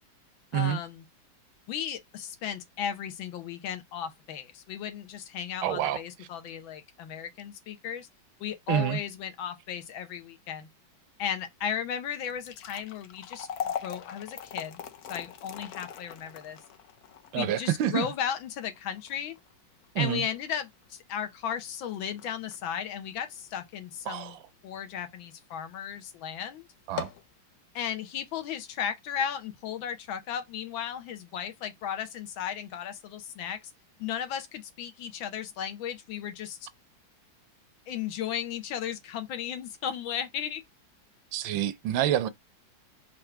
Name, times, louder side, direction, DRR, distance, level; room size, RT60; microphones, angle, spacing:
voice 1, 0.5-1.0 1.7-8.1 8.4-10.7 11.2-14.8 15.1-16.6 17.3-19.4 20.0-24.4 24.6-26.7 27.7-33.6 34.0-36.7 37.9-40.6, left 9 dB, 85° left, 1.6 m, -35 dB
voice 2, 5.6-6.0 8.7-9.0 17.3-18.1 19.9-20.3 24.1-24.4 26.9-27.1 41.3-42.3, right 11 dB, 80° right, 1.3 m, -27 dB
sound 1, 12.2-24.5 24.9-25.0 25.7-25.9 26.2-26.3 26.8-27.3, left 8 dB, 65° left, 0.9 m, -41 dB
4.6 x 2.5 x 4.5 m
omnidirectional pair, 2.1 m